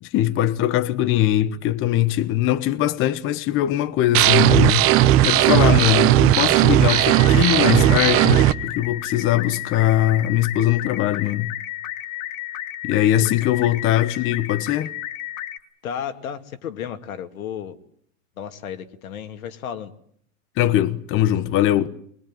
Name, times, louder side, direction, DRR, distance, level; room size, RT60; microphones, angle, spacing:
voice 1, 0.0-11.5 12.8-14.9 20.6-21.9, left 13 dB, 30° left, 1.0 m, -21 dB
sound 1, 4.1-8.5, right 13 dB, 35° right, 1.0 m, -16 dB
sound 2, 6.9-15.6, left 13 dB, 70° left, 2.2 m, -33 dB
voice 2, 15.8-17.8 18.4-19.9, left 8 dB, 90° left, 2.6 m, -33 dB
22.5 x 22.5 x 9.1 m
supercardioid pair, 145°, 41 cm